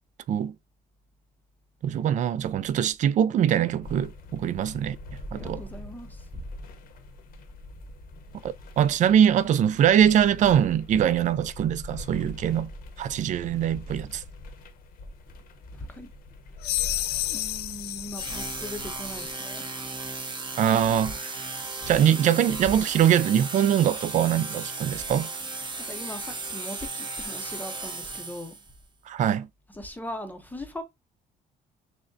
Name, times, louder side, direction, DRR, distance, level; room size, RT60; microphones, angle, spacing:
voice 1, 1.8-5.0 5.3-5.6 8.4-12.7 13.0-14.2 20.6-25.3 29.1-29.5, right 9 dB, 45° right, 0.4 m, -23 dB
sound 1, 3.8-19.3, left 2 dB, 60° left, 0.8 m, -43 dB
voice 2, 5.3-6.4 15.7-16.1 17.2-19.7 25.9-28.6 29.8-30.8, left 1 dB, 10° left, 0.6 m, -39 dB
sound 2, 16.6-19.6, left 15 dB, 75° left, 0.4 m, -32 dB
sound 3, 18.1-28.7, right 3 dB, 25° right, 0.8 m, -35 dB
6.1 x 2.1 x 2.6 m
cardioid pair, 110°, 17 cm